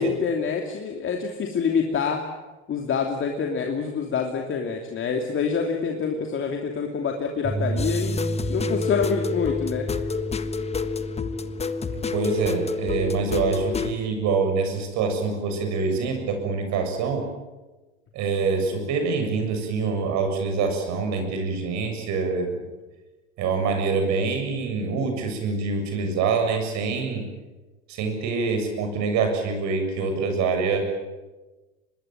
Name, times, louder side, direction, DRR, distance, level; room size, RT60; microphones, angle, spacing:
voice 1, 0.0-2.2 2.7-8.2 8.5-9.9, left 6 dB, 35° left, 3 dB, 2.9 m, -26 dB
sound 1, 7.4-13.7, right 2 dB, 25° right, 6.7 m, -32 dB
sound 2, 7.8-13.9, left 5 dB, 20° left, 1.4 m, -29 dB
voice 2, 11.9-17.2 18.1-22.6 23.4-27.2 27.9-30.8, right 4 dB, 55° right, 5 dB, 7.3 m, -25 dB
25.0 x 20.5 x 8.9 m, 1.2 s
hypercardioid pair, 85°, 34 cm